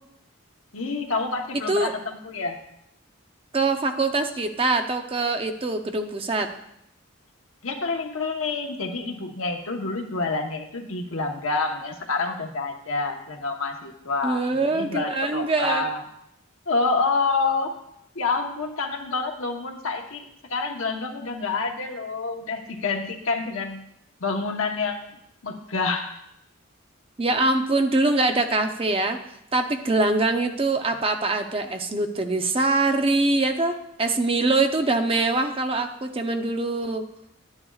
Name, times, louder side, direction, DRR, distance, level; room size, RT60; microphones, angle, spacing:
voice 1, 0.7-2.6 7.6-14.4 14.7-16.0 16.7-17.7 18.1-23.8 24.2-25.1 25.4-26.1, left 3 dB, 80° left, 3 dB, 1.1 m, -28 dB
voice 2, 3.5-6.5 14.2-15.8 27.2-29.2 29.5-37.1, right 2 dB, 25° right, 5 dB, 0.6 m, -23 dB
11.0 x 9.6 x 2.4 m, 0.78 s
head